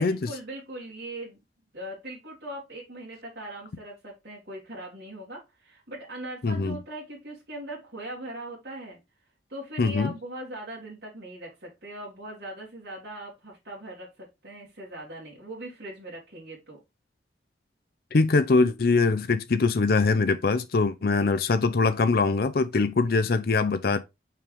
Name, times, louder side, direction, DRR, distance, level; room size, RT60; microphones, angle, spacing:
voice 1, 0.0-1.4 1.7-9.0 9.5-16.8 21.0-21.3 22.9-23.4, right 1 dB, 60° right, 2.6 m, -40 dB
voice 2, 6.4-6.8 9.8-10.1 18.1-24.0, left 3 dB, 55° left, 0.5 m, -23 dB
5.7 x 5.2 x 3.4 m
head